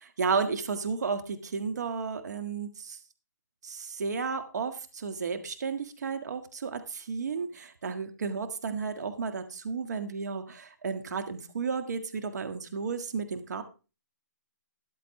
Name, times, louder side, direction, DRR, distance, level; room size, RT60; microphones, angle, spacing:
voice 1, 0.0-3.0 3.6-13.6, right 5 dB, 60° right, 8 dB, 1.7 m, -33 dB
13.5 x 10.5 x 3.2 m, 0.32 s
hypercardioid pair, 150°, 10 cm